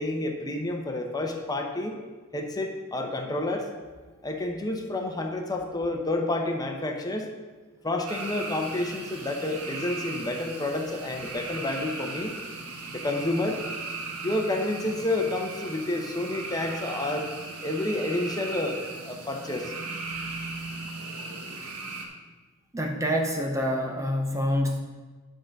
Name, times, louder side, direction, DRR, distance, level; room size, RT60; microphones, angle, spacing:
voice 1, 0.0-2.0 2.3-3.7 4.2-7.3 7.8-12.4 12.9-13.6 14.2-17.3 17.6-19.7, left 2 dB, 20° left, 3 dB, 0.8 m, -29 dB
sound 1, 8.1-22.1, right 3 dB, 85° right, 1.2 m, -37 dB
voice 2, 22.7-24.8, equal, 15° right, 2 dB, 0.7 m, -26 dB
10.5 x 3.9 x 6.4 m, 1.3 s
head